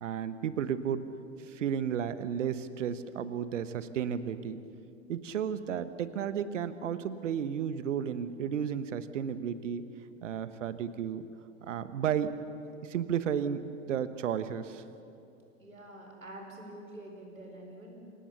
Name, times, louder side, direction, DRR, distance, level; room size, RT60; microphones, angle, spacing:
voice 1, 0.0-1.0 1.4-4.6 5.1-9.9 10.2-11.3 11.6-12.3 12.7-14.8, right 8 dB, 65° right, 13 dB, 1.2 m, -33 dB
voice 2, 15.6-18.1, right 1 dB, 85° right, 1 dB, 4.6 m, -47 dB
27.0 x 18.0 x 7.1 m, 2.7 s
figure-of-eight pair, 95°, 40 cm